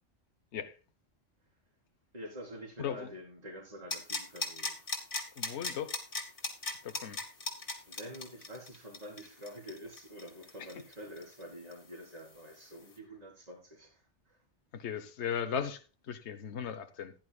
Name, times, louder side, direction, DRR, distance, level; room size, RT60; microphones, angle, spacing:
voice 1, 2.1-4.8 7.2-14.4, equal, 35° right, 4.3 m, -47 dB
voice 2, 2.8-3.1 5.4-6.0 6.8-7.2 10.6-10.7 14.7-17.1, left 8 dB, 70° left, 1.2 m, -37 dB
sound 1, 3.9-11.4 11.7-11.8, left 3 dB, 50° left, 2.5 m, -37 dB
16.0 x 11.0 x 2.3 m
omnidirectional pair, 1.2 m